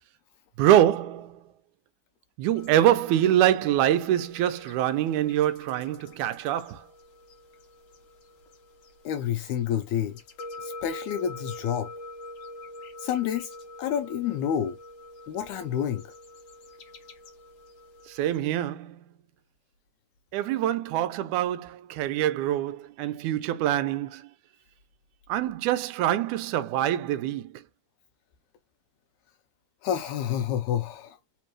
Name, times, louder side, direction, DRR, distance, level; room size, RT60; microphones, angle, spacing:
voice 1, 0.6-1.4 2.4-6.8 18.1-19.0 20.3-24.2 25.3-27.6, right 12 dB, 80° right, 1.9 m, -25 dB
sound 1, 2.6-18.4, left 1 dB, 60° left, 1.4 m, -45 dB
voice 2, 9.1-10.2 10.6-11.9 13.0-13.5 13.8-14.8 15.3-16.0 29.8-31.2, left 9 dB, 80° left, 1.8 m, -28 dB
4.5 x 3.4 x 3.0 m
omnidirectional pair, 3.6 m